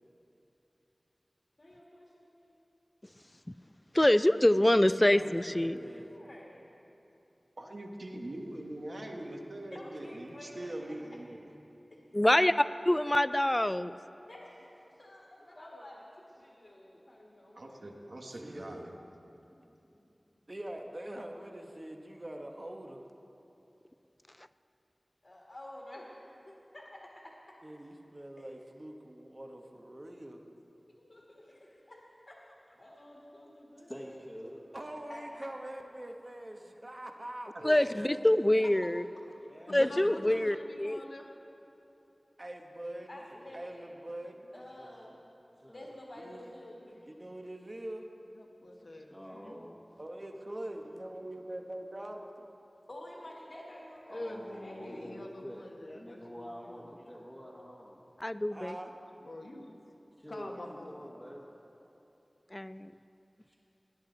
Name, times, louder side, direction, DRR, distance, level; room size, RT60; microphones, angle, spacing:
voice 1, 1.6-2.6 6.1-6.6 9.7-11.0 11.9-12.0 14.3-18.1 19.3-20.0 25.2-27.6 28.4-28.5 31.1-33.9 35.1-35.2 37.9-38.2 38.6-38.9 43.1-43.8 44.5-45.1 45.7-47.3 52.9-55.1, left 1 dB, 55° left, -3 dB, 1.8 m, -50 dB
voice 2, 3.9-5.8 12.1-14.0 37.6-39.1 39.7-41.0 58.2-58.7 62.5-62.9, left 1 dB, 20° left, 14 dB, 0.3 m, -25 dB
voice 3, 5.1-6.2 18.3-18.9 20.5-23.0 27.6-30.4 34.7-38.1 42.4-43.1 43.5-44.5 46.1-46.5 47.1-48.1 50.0-52.3 58.5-58.9, right 1 dB, 35° right, 3 dB, 1.1 m, -43 dB
voice 4, 7.6-11.4 17.6-19.0 37.5-37.6, right 1 dB, 70° right, 1 dB, 1.3 m, -42 dB
voice 5, 33.9-34.6 39.4-40.5 43.3-43.6 44.5-45.2 45.5-45.9 49.1-49.8 50.9-51.2 54.1-55.7 55.9-58.1 60.2-61.5 63.5-63.6, equal, 5° left, -6 dB, 1.3 m, -47 dB
voice 6, 39.7-41.3 48.3-49.5 54.1-57.1 59.2-59.7 60.3-61.1, left 1 dB, 75° left, 0 dB, 1.3 m, -45 dB
17.5 x 10.0 x 3.9 m, 3.0 s
wide cardioid pair, 65°, 0 cm